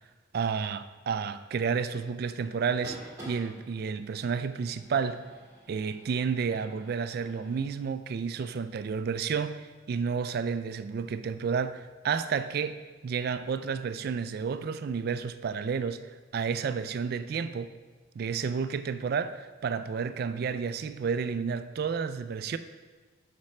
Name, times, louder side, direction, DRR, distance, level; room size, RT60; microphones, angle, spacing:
voice 1, 0.3-3.0 3.3-5.2 5.7-16.0 16.3-17.7 18.2-22.6, right 6 dB, 50° right, 12 dB, 0.3 m, -31 dB
sound 1, 2.7-7.7, right 1 dB, 20° right, 2.0 m, -49 dB
8.3 x 5.9 x 3.2 m, 1.4 s
head